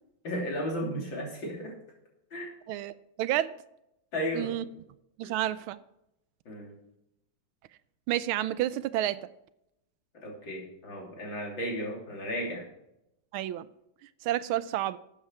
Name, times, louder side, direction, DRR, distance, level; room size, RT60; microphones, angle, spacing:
voice 1, 0.2-1.7 2.3-2.5 4.1-4.5 5.2-5.3 6.5-6.8 10.2-12.6, equal, 60° left, -1 dB, 3.9 m, -34 dB
voice 2, 2.7-3.5 4.3-4.7 5.2-5.8 8.1-9.2 13.3-13.7 14.2-15.0, right 13 dB, 80° right, 15 dB, 1.4 m, -30 dB
13.0 x 8.5 x 4.7 m, 0.82 s
omnidirectional pair, 2.3 m